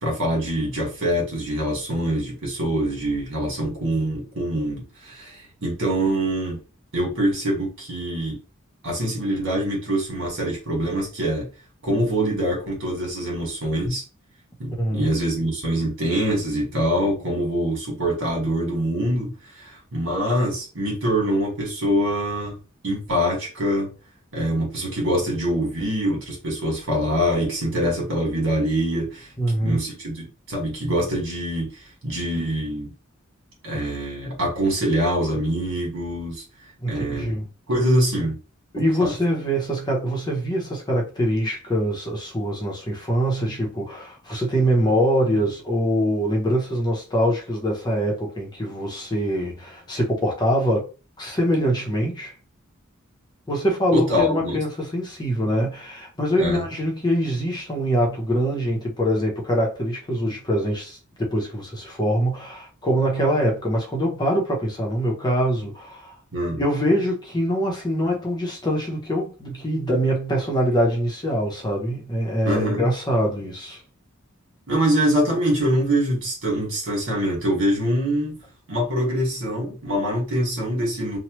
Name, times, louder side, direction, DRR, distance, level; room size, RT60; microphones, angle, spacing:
voice 1, 0.0-6.6 6.9-8.4 8.8-11.5 11.8-14.0 14.6-22.5 22.8-23.9 24.3-29.3 29.6-31.7 32.0-32.9 33.6-36.4 36.9-37.3 37.7-38.4 39.0-39.1 53.9-54.6 56.4-56.6 66.3-66.6 72.4-72.9 74.7-78.4 78.7-81.2, equal, 65° right, 1.6 m, -24 dB
voice 2, 14.8-15.1 29.4-29.8 36.8-37.5 38.7-50.9 51.2-52.3 53.5-66.1 66.6-73.8, equal, 20° left, 0.7 m, -24 dB
3.0 x 2.2 x 3.0 m
head